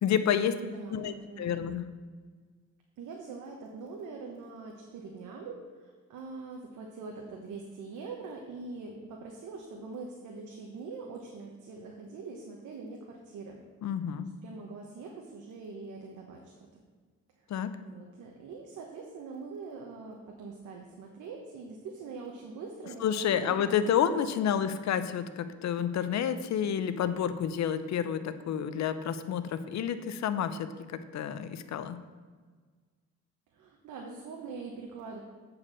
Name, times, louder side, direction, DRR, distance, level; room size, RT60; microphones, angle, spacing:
voice 1, 0.0-0.6 0.9-1.9 13.8-14.3 17.5-17.8 23.0-32.0, left 8 dB, 65° left, 12 dB, 0.7 m, -30 dB
voice 2, 0.6-1.7 3.0-13.6 14.4-16.8 17.8-24.2 24.8-24.9 33.5-35.2, right 4 dB, 75° right, 1 dB, 1.2 m, -43 dB
8.1 x 4.8 x 7.4 m, 1.5 s
cardioid pair, 90°, 30 cm